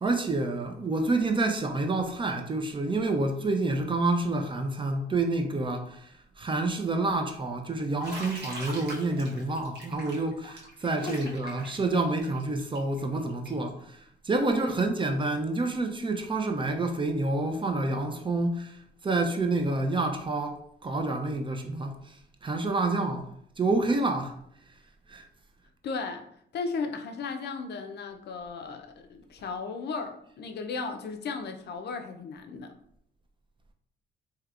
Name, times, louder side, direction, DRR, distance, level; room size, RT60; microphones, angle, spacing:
voice 1, 0.0-23.3 23.6-24.4 25.1-25.3, right 2 dB, 25° right, 0.4 m, -28 dB
Bathtub (filling or washing), 8.0-13.7, right 1 dB, 55° right, 1.1 m, -42 dB
voice 2, 14.5-14.9 25.8-26.3 26.5-32.8, left 4 dB, 60° left, 0.5 m, -36 dB
3.3 x 2.9 x 2.4 m
cardioid pair, 90°, 20 cm